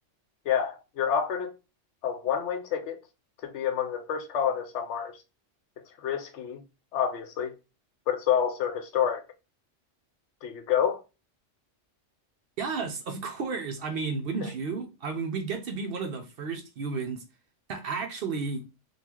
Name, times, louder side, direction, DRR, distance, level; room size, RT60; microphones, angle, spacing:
voice 1, 0.5-1.5 2.0-3.0 3.4-5.1 6.0-6.6 6.9-7.5 8.1-9.2 10.4-11.0, left 8 dB, 75° left, 0.9 m, -28 dB
voice 2, 12.6-17.2 17.7-18.6, right 4 dB, 60° right, 0.7 m, -32 dB
3.9 x 2.3 x 2.9 m
omnidirectional pair, 1.2 m